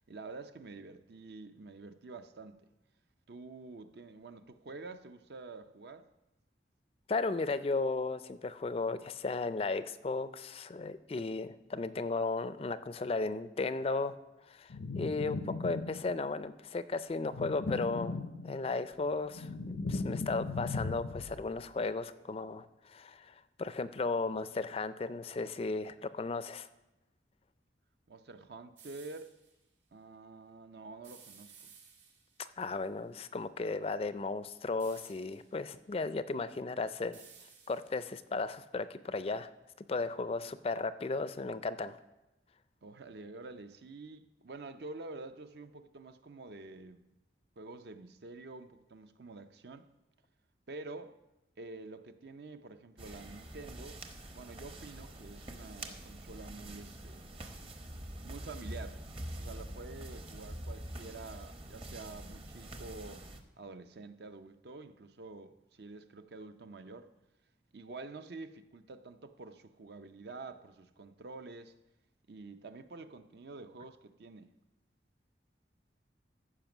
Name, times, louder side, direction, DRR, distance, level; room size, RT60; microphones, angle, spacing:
voice 1, 0.0-2.6 3.3-6.1 28.1-29.3 29.9-31.7 42.8-47.0 47.6-49.9 50.7-51.2 51.6-54.0 54.3-57.3 58.2-59.0 59.3-63.3 63.6-67.1 67.7-71.7 72.3-74.5, right 3 dB, 65° right, 0.6 m, -48 dB
voice 2, 7.1-14.2 14.5-18.2 18.4-19.5 19.9-26.7 32.4-37.2 37.7-39.5 39.9-42.0, left 3 dB, 35° left, 0.3 m, -35 dB
sound 1, 14.7-16.3 17.2-18.7 19.1-21.5, left 3 dB, 85° left, 0.6 m, -38 dB
sound 2, 28.8-29.5 31.0-32.5 34.8-35.6 37.1-38.2, right 6 dB, 80° right, 2.4 m, -57 dB
sound 3, 53.0-63.4, right 1 dB, 30° right, 0.8 m, -45 dB
14.5 x 5.1 x 6.0 m
head